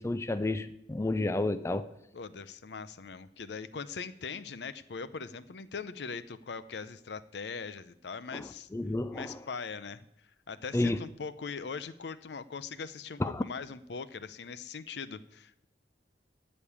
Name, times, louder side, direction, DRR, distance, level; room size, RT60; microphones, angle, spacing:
voice 1, 0.0-1.9 8.3-9.4 10.7-11.0 13.2-13.4, left 2 dB, 15° left, 12 dB, 0.4 m, -31 dB
voice 2, 2.1-8.7 9.1-10.1 10.5-15.7, left 5 dB, 70° left, 14 dB, 0.6 m, -41 dB
13.0 x 5.3 x 8.5 m, 0.79 s
head